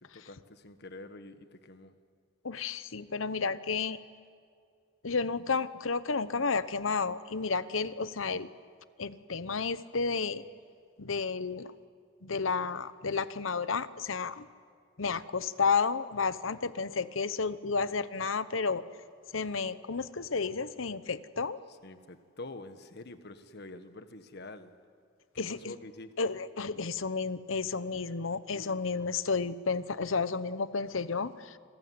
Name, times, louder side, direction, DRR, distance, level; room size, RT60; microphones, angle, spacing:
voice 1, 0.0-1.9 21.7-24.7 25.3-26.3, left 2 dB, 55° left, 10 dB, 1.5 m, -47 dB
voice 2, 2.4-4.0 5.0-8.5 9.0-10.4 11.0-11.7 12.2-14.5 15.0-18.8 19.3-21.6 25.4-25.7 26.2-31.6, left 4 dB, 75° left, 15 dB, 0.9 m, -31 dB
28.5 x 20.5 x 9.6 m, 2.3 s
head